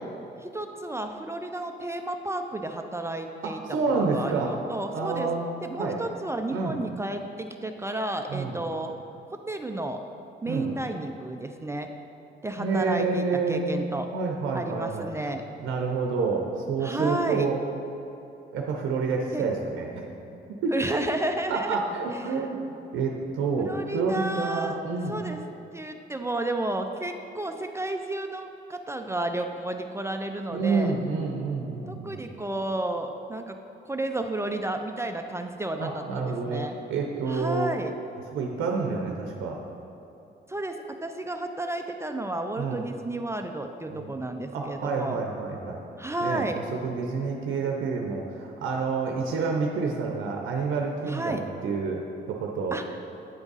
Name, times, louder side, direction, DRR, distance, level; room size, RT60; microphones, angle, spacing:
voice 1, 0.4-3.6 4.0-5.3 5.6-8.9 9.3-10.0 10.4-11.9 12.4-14.1 14.5-15.4 16.8-17.5 19.3-19.4 20.7-21.8 22.1-22.4 23.6-24.8 25.1-25.4 25.7-30.9 31.9-33.6 33.8-36.8 37.3-37.9 40.5-45.2 46.0-46.6 51.1-51.4 52.7-53.0, right 2 dB, 15° right, 5 dB, 0.3 m, -32 dB
voice 2, 3.4-4.5 4.9-5.5 5.8-6.0 6.5-6.8 8.3-8.6 10.5-10.7 12.6-13.7 14.1-15.3 15.6-17.6 18.5-20.1 20.3-20.8 21.5-25.2 30.5-32.2 35.8-37.7 38.3-39.6 42.6-42.8 43.9-44.1 44.5-45.8 46.2-52.8, right 4 dB, 80° right, 1 dB, 0.6 m, -28 dB
9.0 x 3.5 x 4.0 m, 2.9 s
cardioid pair, 90°, 20 cm